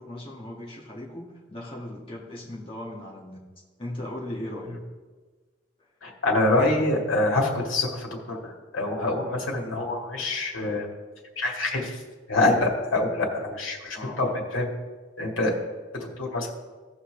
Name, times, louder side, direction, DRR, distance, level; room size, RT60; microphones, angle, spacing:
voice 1, 0.0-3.4 3.8-4.8 13.9-14.4, left 1 dB, 25° left, -5 dB, 1.9 m, -37 dB
voice 2, 6.0-10.9 11.4-12.0 12.3-14.7 15.2-15.6 15.9-16.5, left 2 dB, 90° left, 0 dB, 1.9 m, -25 dB
16.5 x 5.6 x 3.3 m, 1.4 s
head